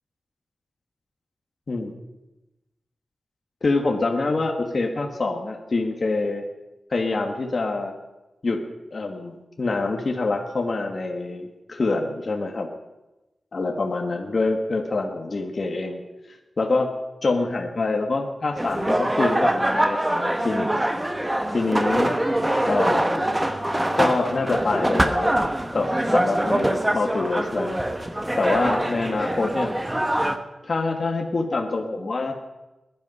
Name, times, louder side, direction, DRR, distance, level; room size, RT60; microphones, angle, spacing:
voice 1, 3.6-6.4 6.9-7.9 8.4-8.6 8.9-12.7 13.5-16.0 16.6-16.9 17.2-20.7 21.5-22.1 22.6-23.2 23.9-25.4 25.7-27.8 28.4-29.7 30.6-32.3, left 3 dB, 45° left, 3 dB, 1.5 m, -25 dB
sound 1, 18.6-30.4, right 1 dB, 10° right, 1.0 m, -24 dB
20.5 x 11.0 x 5.4 m, 1.0 s
wide cardioid pair, 125°, 0 cm